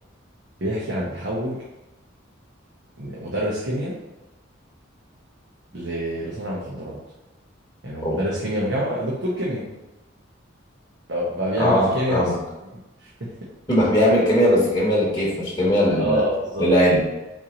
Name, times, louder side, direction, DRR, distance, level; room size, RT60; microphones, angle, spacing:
voice 1, 0.6-1.6 3.0-3.9 5.7-7.0 7.8-9.7 11.1-12.3 12.7-12.8 13.2-13.3 16.0-16.7, equal, 60° right, -5 dB, 0.9 m, -26 dB
voice 2, 11.6-12.4 13.7-16.2 16.6-17.0, equal, 20° left, -7 dB, 1.1 m, -19 dB
4.6 x 2.9 x 3.7 m, 1.0 s
head